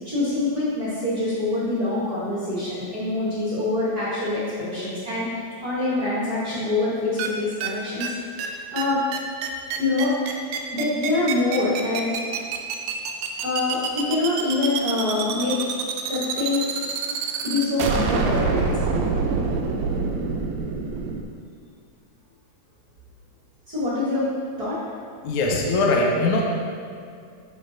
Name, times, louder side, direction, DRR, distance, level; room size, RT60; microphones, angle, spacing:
voice 1, 0.0-5.3 5.6-8.0 8.3-9.0 9.8-10.1 10.7-12.1 13.4-15.6 16.1-16.7 17.4-18.8 23.7-24.2 24.6-24.8, left 2 dB, 55° right, -8 dB, 1.0 m, -25 dB
sound 1, 7.2-7.3 7.6-7.7 8.0-8.1 8.4-8.5 8.8-8.9 9.1-21.2, right 5 dB, 85° right, 2.1 m, -26 dB
voice 2, 25.2-26.4, left 2 dB, 85° left, -1 dB, 1.2 m, -21 dB
11.0 x 4.1 x 2.7 m, 2.3 s
omnidirectional pair, 3.5 m